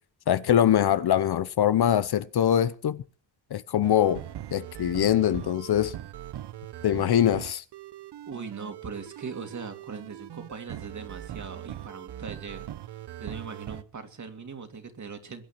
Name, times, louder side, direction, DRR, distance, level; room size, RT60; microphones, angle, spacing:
voice 1, 0.3-3.0 3.5-4.2 4.5-5.9 6.8-7.6, left 10 dB, 55° left, 0.9 m, -23 dB
sound 1, 3.8-13.8, right 12 dB, 60° right, 0.9 m, -41 dB
voice 2, 8.3-15.4, right 5 dB, 40° right, 2.9 m, -40 dB
22.0 x 8.8 x 6.0 m
cardioid pair, 100°, 46 cm